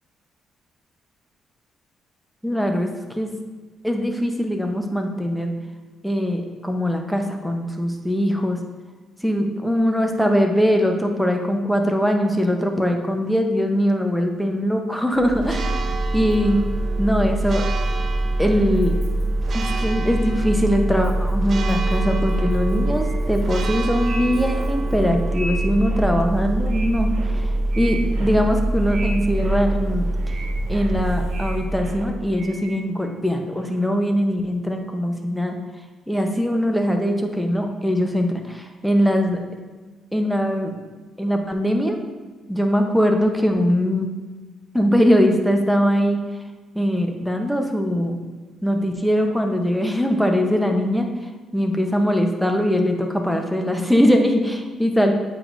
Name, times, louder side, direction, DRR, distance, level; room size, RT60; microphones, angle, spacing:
voice 1, 2.4-3.3 3.8-5.5 6.0-8.6 9.2-15.8 16.1-16.6 17.0-17.6 18.4-18.9 19.5-30.0 30.7-35.6 36.1-39.4 40.1-40.8 41.2-42.0 42.5-44.1 44.7-46.2 46.7-48.2 48.6-51.1 51.5-55.1, equal, ahead, 3 dB, 0.8 m, -21 dB
Church bell, 15.2-32.4, right 2 dB, 50° right, 0.4 m, -24 dB
sound 1, 22.2-33.2 33.5-34.0, right 2 dB, 70° right, 0.8 m, -39 dB
8.0 x 4.8 x 2.6 m, 1.3 s
cardioid pair, 90°, 0 cm